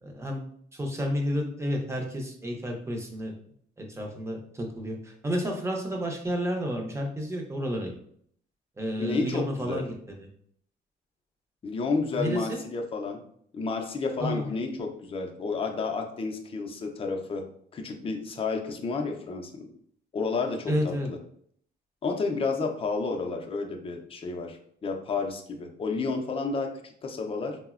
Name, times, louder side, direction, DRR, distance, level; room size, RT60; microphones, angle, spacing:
voice 1, 0.0-3.3 3.8-7.9 8.8-9.9 12.1-12.6 14.2-14.5 20.7-21.1, equal, 15° right, 1 dB, 0.6 m, -31 dB
voice 2, 9.0-9.8 11.6-13.2 13.5-17.5 17.7-19.7 20.1-21.2 22.0-27.6, left 4 dB, 30° left, 3 dB, 0.5 m, -31 dB
3.6 x 2.0 x 2.4 m, 0.63 s
cardioid pair, 110°, 19 cm